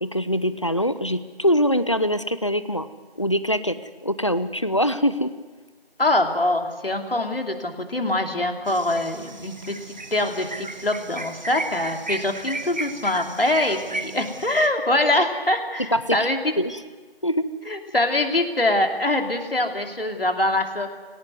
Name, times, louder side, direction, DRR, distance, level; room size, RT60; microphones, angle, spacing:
voice 1, 0.0-2.9 3.2-3.8 4.0-5.3 15.9-16.2 16.6-16.8 17.2-17.5, equal, 30° left, 13 dB, 0.7 m, -23 dB
voice 2, 6.0-16.5 17.7-21.0, left 1 dB, 70° left, 4 dB, 2.9 m, -24 dB
sound 1, 8.7-14.7, right 2 dB, 45° right, 1.3 m, -35 dB
19.5 x 17.5 x 9.5 m, 1.4 s
figure-of-eight pair, 170°, 30 cm